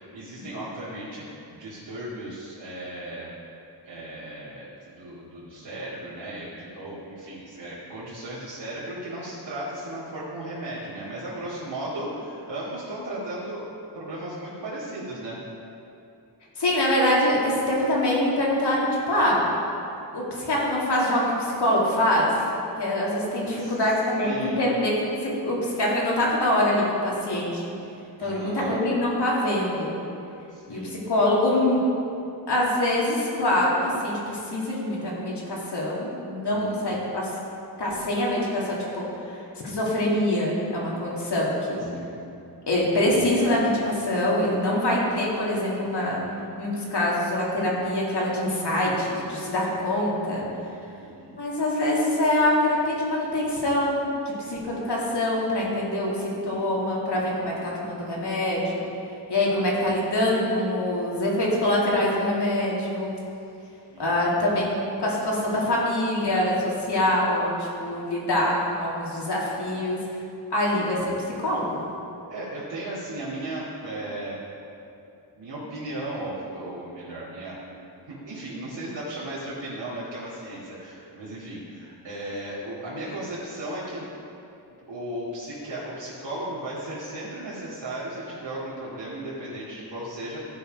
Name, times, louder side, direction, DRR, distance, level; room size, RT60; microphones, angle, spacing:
voice 1, 0.0-3.3 3.8-13.6 13.9-15.4 23.4-23.8 24.2-24.7 28.2-28.8 30.5-31.0 36.5-37.0 41.9-42.3 50.8-51.4 57.4-57.5 63.9-64.2 72.3-74.5 75.4-77.8 78.1-84.1 84.9-90.5, right 1 dB, 85° right, -10 dB, 2.3 m, -36 dB
voice 2, 16.6-19.4 20.1-22.5 22.8-27.6 28.2-29.9 30.7-31.8 32.5-37.3 37.8-39.4 39.6-41.9 42.7-46.2 46.6-50.4 51.4-54.0 54.4-58.8 59.3-63.1 64.0-64.7 65.0-70.0 70.5-71.1 71.4-71.8, left 1 dB, 70° left, -5 dB, 2.6 m, -24 dB
14.5 x 5.6 x 5.2 m, 2.7 s
wide cardioid pair, 120°, 43 cm